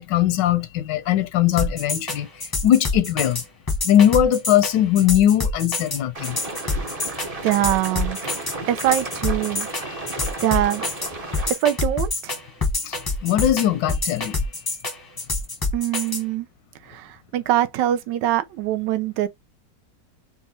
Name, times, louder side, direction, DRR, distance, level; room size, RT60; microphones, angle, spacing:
voice 1, 0.0-3.4 3.8-6.4 9.8-10.3 11.2-11.4 12.8-14.4, left 11 dB, 90° left, 1.3 m, -20 dB
sound 1, 1.6-16.2, left 3 dB, 25° left, 0.5 m, -26 dB
sound 2, 6.1-11.5, right 3 dB, 30° right, 0.7 m, -33 dB
voice 2, 7.4-8.2 8.7-9.7 10.4-10.9 11.5-12.3 15.7-16.5 16.9-19.3, right 13 dB, 85° right, 1.2 m, -23 dB
4.2 x 2.3 x 4.1 m
omnidirectional pair, 1.9 m